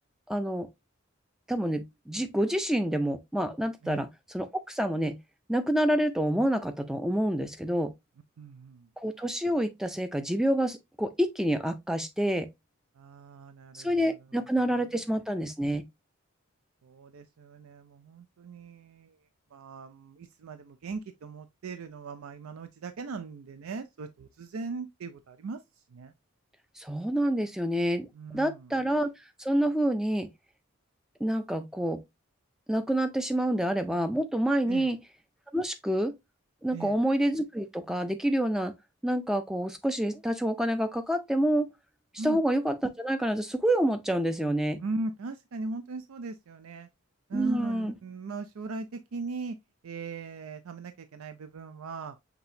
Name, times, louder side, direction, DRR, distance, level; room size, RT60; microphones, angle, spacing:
voice 1, 0.3-0.7 1.5-5.2 5.5-7.9 9.0-12.5 13.7-15.9 26.8-28.1 28.3-29.1 29.4-30.3 31.2-32.0 32.7-35.0 35.5-36.2 36.6-38.7 39.0-41.7 42.2-44.8 47.3-48.0, right 1 dB, ahead, 0.3 m, -28 dB
voice 2, 8.4-8.9 13.0-14.1 16.8-19.2 19.5-25.6 25.9-26.1 28.1-28.7 34.7-34.9 36.7-37.0 42.2-42.4 44.8-46.9 47.3-49.6 49.8-52.2, right 3 dB, 80° right, 0.4 m, -39 dB
6.0 x 2.8 x 2.6 m
head